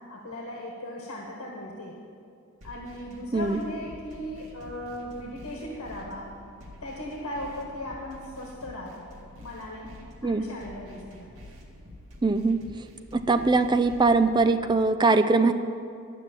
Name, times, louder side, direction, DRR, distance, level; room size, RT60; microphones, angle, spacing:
voice 1, 0.1-2.0 2.6-6.3 6.8-9.1 9.4-9.9 10.2-11.3, left 1 dB, 85° left, -1 dB, 1.4 m, -37 dB
sound 1, 2.6-14.6, left 1 dB, 80° right, 2.0 m, -48 dB
voice 2, 12.2-12.6 13.1-15.5, right 3 dB, 20° right, 10 dB, 0.4 m, -21 dB
11.5 x 6.1 x 8.9 m, 2.4 s
head